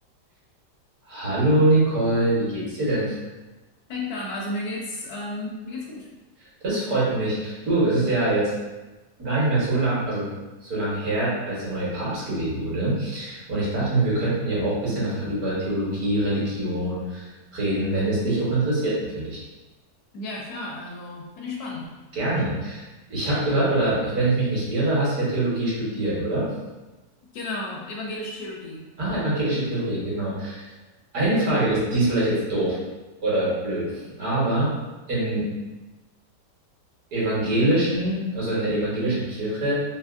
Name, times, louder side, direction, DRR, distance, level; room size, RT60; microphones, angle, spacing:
voice 1, 1.1-3.1 6.6-8.5 9.2-10.3 10.6-17.3 17.5-19.4 22.2-22.8 23.1-26.5 29.0-30.7 31.1-32.8 33.2-34.7 35.1-35.5 37.1-39.7, right 1 dB, 60° right, -8 dB, 1.5 m, -24 dB
voice 2, 3.9-6.1 20.1-21.9 27.3-28.8, left 2 dB, 70° left, -2 dB, 1.0 m, -33 dB
3.4 x 2.7 x 2.4 m, 1.1 s
omnidirectional pair, 1.8 m